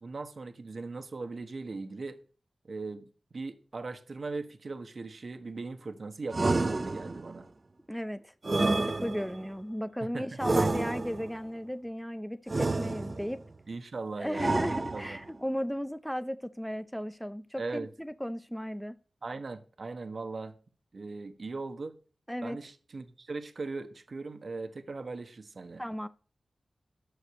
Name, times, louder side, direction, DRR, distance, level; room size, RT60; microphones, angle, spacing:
voice 1, 0.0-2.2 2.7-3.1 3.3-7.5 10.0-10.3 13.7-15.2 17.6-17.9 19.2-20.5 20.9-22.0 22.4-25.8, right 3 dB, 60° right, 1.2 m, -39 dB
sound 1, 6.3-7.4 8.4-9.5 10.4-11.4 12.5-13.4 14.3-15.3, right 2 dB, 40° right, 0.8 m, -29 dB
voice 2, 7.9-13.4 14.2-18.9 22.3-22.6 25.8-26.1, equal, ahead, 0.7 m, -35 dB
11.5 x 6.5 x 6.4 m
wide cardioid pair, 75°, 0 cm